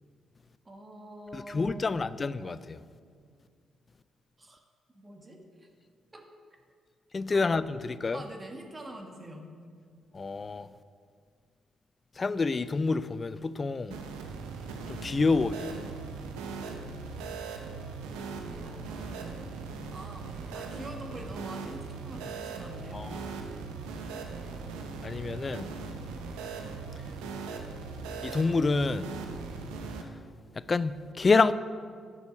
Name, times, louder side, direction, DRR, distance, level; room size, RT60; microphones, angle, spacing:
voice 1, 0.6-2.1 4.4-4.6 4.9-5.7 6.1-6.2 7.3-7.7 8.1-9.4 18.4-19.6 19.9-23.4, right 1 dB, 30° right, 1.5 m, -46 dB
voice 2, 1.3-2.8 7.1-8.2 10.1-10.7 12.2-14.0 14.9-15.8 22.9-23.1 25.0-25.7 28.2-29.1 30.7-31.5, left 4 dB, 40° left, 0.4 m, -27 dB
sound 1, 13.9-30.0, right 4 dB, 85° right, 0.7 m, -39 dB
9.9 x 6.3 x 5.4 m
supercardioid pair, 50°, 0 cm